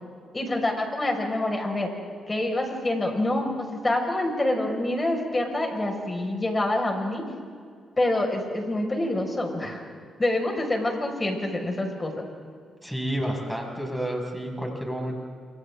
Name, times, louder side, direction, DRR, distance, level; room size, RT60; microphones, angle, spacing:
voice 1, 0.3-1.9 2.3-7.2 8.0-9.8 10.2-12.3, left 1 dB, 25° left, 2 dB, 5.7 m, -26 dB
voice 2, 12.8-15.2, equal, ahead, 0 dB, 6.3 m, -30 dB
28.5 x 25.5 x 3.8 m, 2.1 s
supercardioid pair, 60°, 0 cm